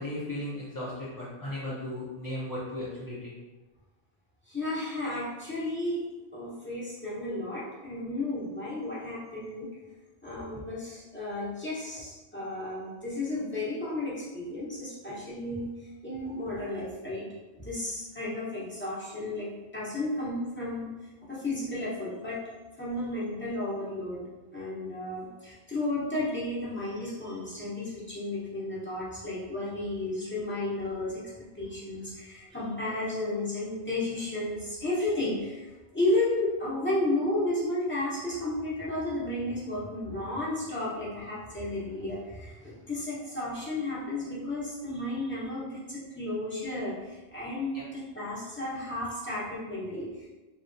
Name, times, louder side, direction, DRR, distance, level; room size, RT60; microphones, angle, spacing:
voice 1, 0.0-3.3 10.5-10.6 47.7-47.8, left 1 dB, 35° left, -8 dB, 0.3 m, -36 dB
voice 2, 4.5-6.0 6.3-9.7 10.2-15.7 16.0-17.3 17.5-20.9 21.3-22.4 22.8-31.2 31.5-35.7 35.9-50.3, left 2 dB, 10° left, -9 dB, 0.8 m, -33 dB
3.2 x 2.2 x 2.5 m, 1.2 s
omnidirectional pair, 1.1 m